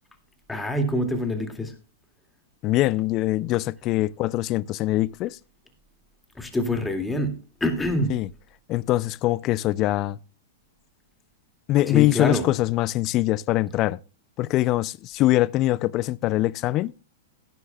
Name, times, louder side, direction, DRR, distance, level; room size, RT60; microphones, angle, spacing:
voice 1, 0.5-1.7 6.4-8.1 11.9-12.5, left 1 dB, 10° left, 2.3 m, -26 dB
voice 2, 2.6-5.4 8.1-8.3 8.7-10.2 11.7-14.0 14.4-16.9, left 16 dB, 35° left, 0.4 m, -23 dB
17.5 x 9.6 x 2.3 m
hypercardioid pair, 130°, 0 cm